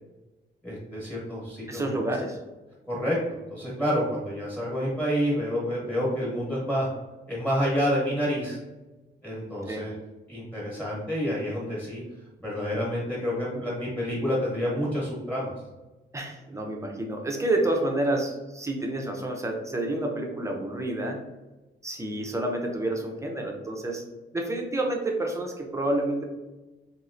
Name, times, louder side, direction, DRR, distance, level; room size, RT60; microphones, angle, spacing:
voice 1, 0.6-2.0 2.9-6.9 7.3-8.6 9.2-9.9 10.3-12.0 12.4-15.5, equal, 10° left, -6 dB, 1.0 m, -28 dB
voice 2, 1.7-2.4 9.7-9.8 16.1-21.2 21.8-24.0 24.3-26.2, right 1 dB, 15° right, 1 dB, 0.4 m, -29 dB
3.0 x 2.8 x 2.5 m, 1.1 s
wide cardioid pair, 150°, 20 cm